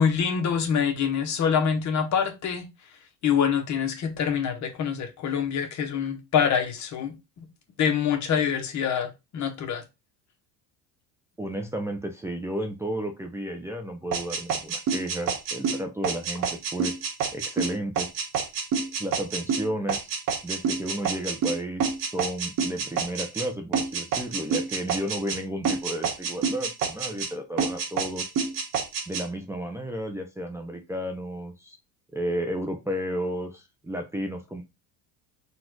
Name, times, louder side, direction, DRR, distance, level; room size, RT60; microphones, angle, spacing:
voice 1, 0.0-2.7 3.2-7.1 7.8-9.8, left 7 dB, 50° left, 1.2 m, -25 dB
voice 2, 11.4-16.9 17.3-18.1 19.0-20.1 20.4-28.3 29.1-31.8 32.1-34.6, right 1 dB, 5° right, 0.6 m, -32 dB
sound 1, 14.1-23.5 23.7-25.4 25.6-27.3 27.6-29.2, right 6 dB, 60° right, 1.4 m, -28 dB
4.1 x 2.5 x 4.5 m
cardioid pair, 120°, 38 cm